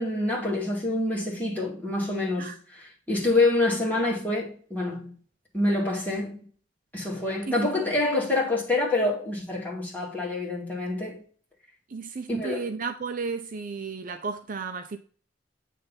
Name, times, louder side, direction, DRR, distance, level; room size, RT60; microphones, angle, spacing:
voice 1, 0.0-5.1 5.5-6.4 6.9-11.2 12.3-12.7, left 2 dB, 10° left, 2.3 m, -27 dB
voice 2, 11.9-15.0, right 4 dB, 50° right, 0.5 m, -33 dB
8.3 x 3.3 x 4.1 m
head